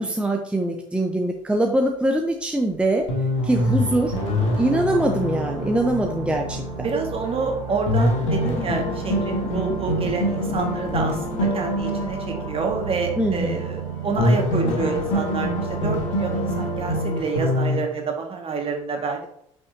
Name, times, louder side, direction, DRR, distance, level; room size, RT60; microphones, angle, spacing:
voice 1, 0.0-3.1 3.4-4.1 4.6-6.9 13.2-13.6, right 1 dB, 5° right, 2 dB, 0.9 m, -23 dB
sound 1, 2.7-2.8 3.1-7.3 7.7-13.8 14.2-17.8, left 1 dB, 75° left, 1.4 m, -25 dB
sound 2, 3.4-17.1, right 6 dB, 85° right, 1.2 m, -34 dB
sound 3, 6.3-11.5, left 5 dB, 35° left, 1.6 m, -39 dB
voice 2, 6.8-19.2, right 4 dB, 35° right, 2 dB, 1.9 m, -28 dB
7.9 x 5.9 x 2.8 m, 0.71 s
figure-of-eight pair, 50°, 17 cm